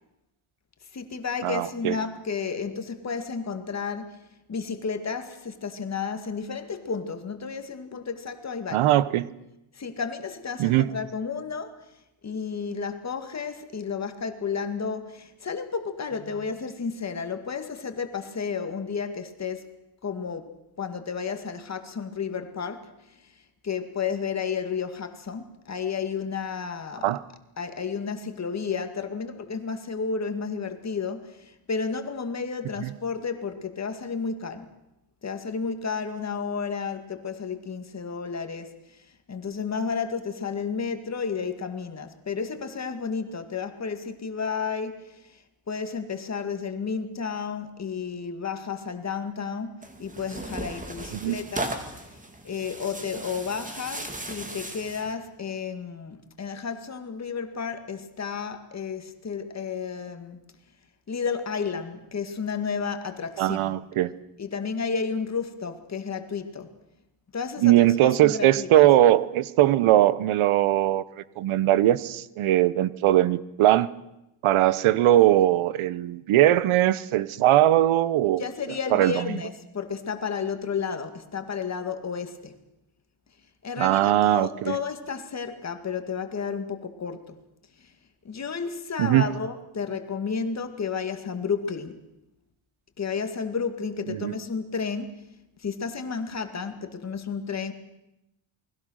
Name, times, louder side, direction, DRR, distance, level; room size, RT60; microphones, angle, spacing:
voice 1, 0.9-4.2 4.5-8.9 9.7-11.9 12.2-19.7 20.0-22.9 23.6-27.1 27.6-34.7 35.2-45.4 45.7-51.7 52.1-52.2 52.4-60.4 61.1-63.8 64.4-66.7 67.3-67.9 68.2-68.9 78.4-82.6 83.6-87.4 87.8-87.9 88.2-92.0 93.0-95.2 95.6-97.7, left 5 dB, 35° left, 2.2 m, -32 dB
voice 2, 1.4-2.0 8.7-9.3 10.6-10.9 27.0-27.2 51.2-51.4 63.4-64.1 67.6-71.0 71.4-73.9 74.4-78.4 78.9-79.3 83.8-84.8 89.0-89.3 94.1-94.3, right 13 dB, 90° right, 1.0 m, -20 dB
Tearing, 49.8-55.1, right 2 dB, 15° right, 2.4 m, -37 dB
28.5 x 21.0 x 6.4 m
cardioid pair, 145°, 48 cm